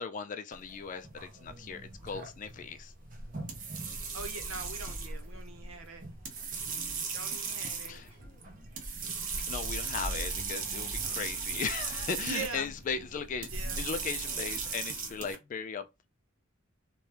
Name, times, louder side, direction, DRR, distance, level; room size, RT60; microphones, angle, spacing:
voice 1, 0.0-2.9 7.9-8.1 9.3-13.5 13.8-16.1, left 6 dB, 40° left, 0.3 m, -37 dB
sound 1, 0.5-15.4, right 5 dB, 40° right, 0.6 m, -38 dB
sound 2, 1.4-14.7, equal, 5° left, 1.0 m, -46 dB
voice 2, 4.1-6.1 6.9-8.0 12.2-12.7 13.5-13.8, right 5 dB, 85° right, 0.7 m, -42 dB
2.8 x 2.2 x 3.2 m
head